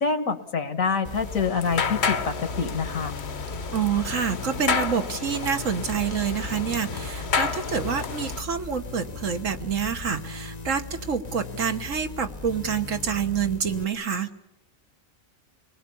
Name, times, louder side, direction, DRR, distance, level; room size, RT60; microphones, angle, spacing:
voice 1, 0.0-3.1, left 5 dB, 70° left, 10 dB, 1.9 m, -26 dB
sound 1, 1.0-13.8, left 4 dB, 30° left, 1.0 m, -39 dB
sound 2, 1.1-8.4, left 5 dB, 50° left, 1.3 m, -31 dB
voice 2, 3.7-14.3, right 7 dB, 65° right, 7 dB, 1.7 m, -27 dB
28.0 x 20.5 x 7.0 m, 0.81 s
omnidirectional pair, 1.5 m